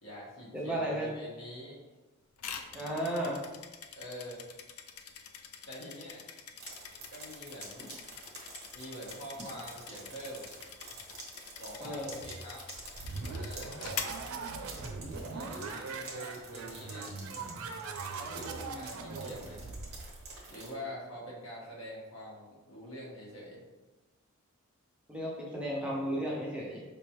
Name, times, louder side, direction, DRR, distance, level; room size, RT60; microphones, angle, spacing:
voice 1, 0.0-1.8 3.9-4.5 5.6-6.2 7.1-7.9 8.7-10.5 11.6-12.6 13.3-13.7 15.1-17.1 18.2-19.7 20.5-23.6, equal, 70° left, -5 dB, 1.5 m, -45 dB
voice 2, 0.5-1.1 2.7-3.4 11.8-12.1 25.1-26.8, right 1 dB, 5° right, -4 dB, 0.6 m, -34 dB
sound 1, 2.4-15.0, left 7 dB, 90° left, 0.4 m, -45 dB
sound 2, 6.6-20.7, right 3 dB, 50° right, 1.1 m, -49 dB
sound 3, 12.7-20.4, right 4 dB, 85° right, 0.5 m, -41 dB
5.0 x 3.4 x 3.0 m, 1.2 s
head